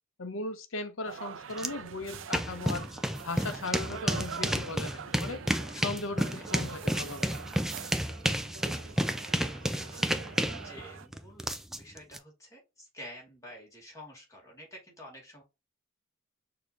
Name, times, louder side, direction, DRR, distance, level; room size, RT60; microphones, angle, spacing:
voice 1, 0.2-2.9 3.2-5.5 5.7-7.3, left 3 dB, 75° left, 0.8 m, -37 dB
sound 1, 1.0-11.1, right 7 dB, 65° right, 0.5 m, -44 dB
sound 2, 1.6-1.7 2.0-12.2, equal, ahead, 0.3 m, -31 dB
voice 2, 9.2-10.1 10.6-15.4, equal, 15° left, 2.2 m, -50 dB
6.3 x 2.9 x 2.4 m
head